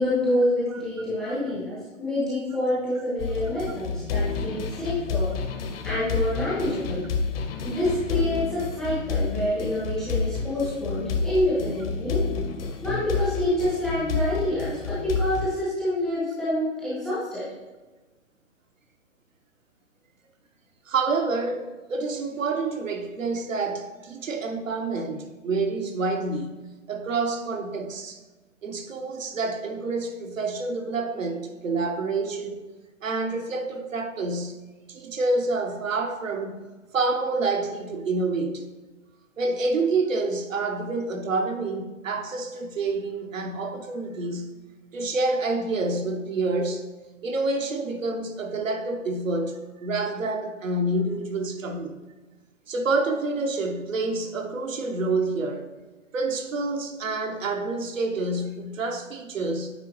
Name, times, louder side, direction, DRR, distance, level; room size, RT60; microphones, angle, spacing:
voice 1, 0.0-5.3 5.8-7.1 7.6-12.2 12.8-17.5, left 1 dB, ahead, 0.3 m, -27 dB
sound 1, 3.2-15.5, left 4 dB, 50° left, 0.9 m, -29 dB
voice 2, 20.9-26.6 26.9-28.2 28.6-32.6 33.0-34.5 34.9-36.5 36.9-38.6 39.4-44.5 44.9-46.8 47.2-52.0 52.7-55.7 56.1-59.7, right 3 dB, 75° right, 1.0 m, -28 dB
9.2 x 3.8 x 3.1 m
hypercardioid pair, 130°, 39 cm